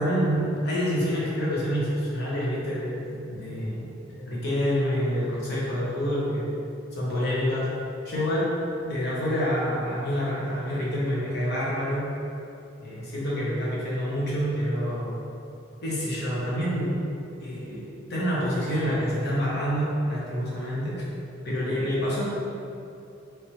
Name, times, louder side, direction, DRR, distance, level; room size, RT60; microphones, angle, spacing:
voice 1, 0.0-6.5 6.9-7.7 8.0-12.1 12.8-15.1 15.8-17.0 17.4-21.0 21.4-22.2, equal, 60° left, -6 dB, 0.9 m, -27 dB
3.2 x 3.1 x 3.0 m, 2.6 s
head